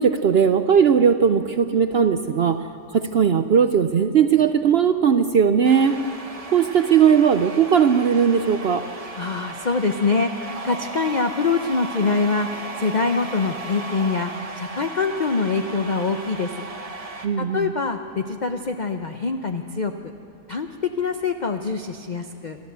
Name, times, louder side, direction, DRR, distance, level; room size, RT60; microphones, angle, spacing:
voice 1, 0.0-2.6 2.9-5.9 6.5-8.8 17.2-17.7, right 7 dB, 60° right, 10 dB, 0.6 m, -18 dB
sound 1, 5.6-17.3, right 3 dB, 25° right, 1.1 m, -36 dB
voice 2, 9.2-12.5 12.8-14.3 14.6-16.5 17.4-19.9 20.5-22.6, left 4 dB, 40° left, 6 dB, 0.7 m, -24 dB
27.5 x 13.5 x 8.1 m, 2.6 s
omnidirectional pair, 1.6 m